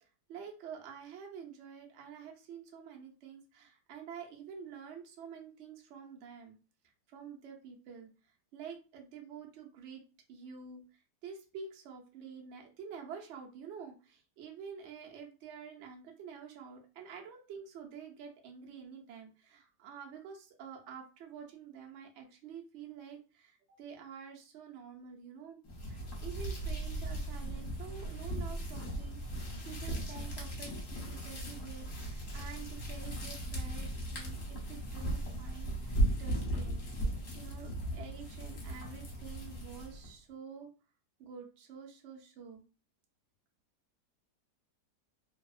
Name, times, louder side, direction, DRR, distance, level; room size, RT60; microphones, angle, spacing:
voice 1, 0.3-6.6 7.1-8.1 8.5-10.0 10.3-36.8 37.3-40.7 41.2-42.6, right 6 dB, 65° right, 1 dB, 0.7 m, -48 dB
sound 1, 25.6-40.1, right 1 dB, 55° left, 1.1 m, -37 dB
2.7 x 2.1 x 2.3 m, 0.33 s
omnidirectional pair, 1.8 m